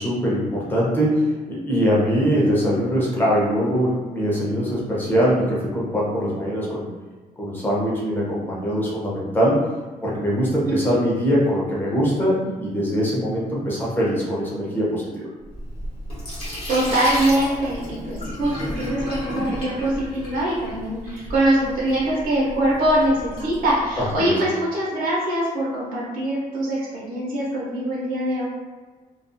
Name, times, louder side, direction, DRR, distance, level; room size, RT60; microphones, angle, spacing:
voice 1, 0.0-6.9 7.4-9.6 10.0-15.3 24.0-24.3, equal, 15° left, -6 dB, 0.7 m, -22 dB
voice 2, 10.7-11.0 16.7-28.4, right 1 dB, 65° right, -8 dB, 0.7 m, -23 dB
Sink (filling or washing), 15.4-24.2, equal, 40° left, 0.8 m, -33 dB
2.3 x 2.3 x 2.6 m, 1.4 s
cardioid pair, 170°, 15 cm